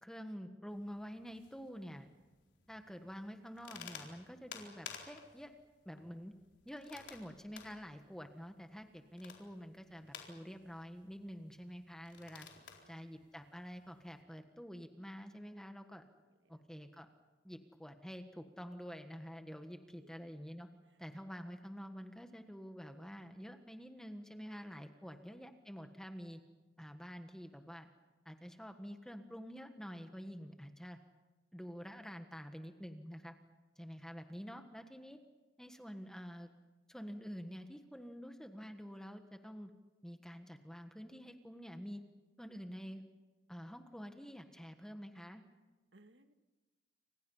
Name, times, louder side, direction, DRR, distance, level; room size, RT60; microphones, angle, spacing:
voice 1, 0.0-2.1 2.7-5.5 5.8-6.3 6.6-12.5 12.9-16.0 16.5-17.1 17.4-20.7 21.0-26.4 26.8-27.9 28.2-31.0 31.5-33.3 33.8-35.2 35.6-36.5 36.9-39.7 40.0-42.0 42.4-43.0 43.5-45.4, equal, 5° left, 6 dB, 1.4 m, -48 dB
sound 1, 0.7-14.2, left 6 dB, 90° left, 4.2 m, -56 dB
voice 2, 12.6-13.0 16.3-16.6 19.6-20.1 20.9-21.0 25.0-25.2 45.9-46.3, right 2 dB, 80° right, 8 dB, 1.6 m, -67 dB
29.5 x 26.0 x 5.6 m, 1.1 s
head